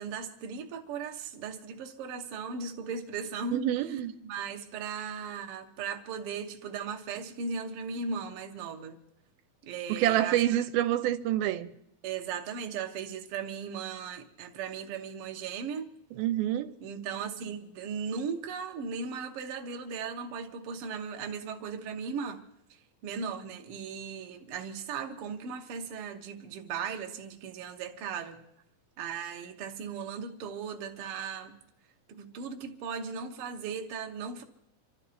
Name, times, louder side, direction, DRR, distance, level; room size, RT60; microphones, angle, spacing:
voice 1, 0.0-3.6 3.9-9.0 9.6-10.4 12.0-15.9 16.8-22.4 22.7-28.4 29.0-31.5 32.1-34.4, right 6 dB, 60° right, 1.6 m, -37 dB
voice 2, 3.5-4.1 9.9-11.7 16.2-16.7, right 12 dB, 90° right, 2.6 m, -27 dB
26.5 x 13.0 x 4.3 m
omnidirectional pair, 4.2 m